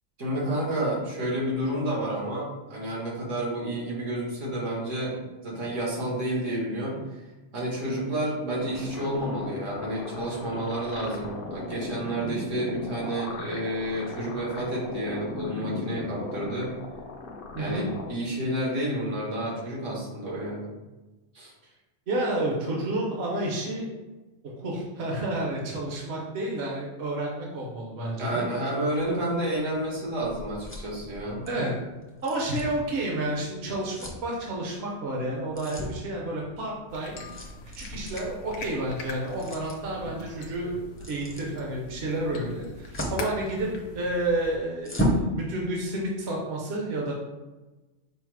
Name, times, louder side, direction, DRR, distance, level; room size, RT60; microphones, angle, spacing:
voice 1, 0.2-7.2 7.5-16.7 17.6-20.7 21.3-21.5 28.2-31.5, right 1 dB, 80° right, -4 dB, 1.6 m, -30 dB
sound 1, 8.5-18.1, left 3 dB, 60° left, 0.6 m, -37 dB
voice 2, 17.5-17.9 22.1-23.9 24.4-28.5 31.5-31.7 32.2-34.0 34.2-37.2 37.8-40.7 41.1-43.7 43.9-47.1, right 1 dB, 60° right, -2 dB, 1.0 m, -30 dB
sound 2, 29.9-45.3, equal, 15° left, 0.5 m, -37 dB
sound 3, 36.9-44.6, left 2 dB, 80° left, 1.0 m, -42 dB
5.5 x 2.0 x 4.6 m, 1.1 s
omnidirectional pair, 1.3 m